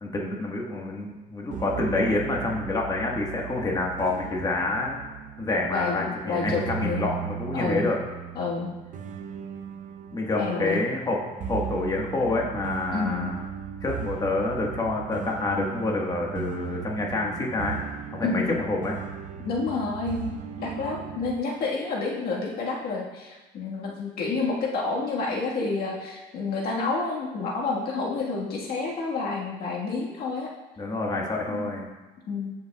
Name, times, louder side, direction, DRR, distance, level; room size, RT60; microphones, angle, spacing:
voice 1, 0.0-5.0 5.4-8.0 10.1-13.4 13.8-17.8 18.1-19.0 30.8-31.9, left 2 dB, 20° left, -2 dB, 1.3 m, -27 dB
sound 1, 1.5-21.3, right 8 dB, 50° right, 0.6 m, -37 dB
voice 2, 5.7-7.1 7.5-7.9 8.3-8.7 10.4-10.8 12.9-13.3 18.2-18.6 19.4-20.3 20.6-30.5 31.5-31.7 32.3-32.5, left 3 dB, 65° left, -2 dB, 1.5 m, -29 dB
15.0 x 5.6 x 2.3 m, 1.2 s
cardioid pair, 110°, 17 cm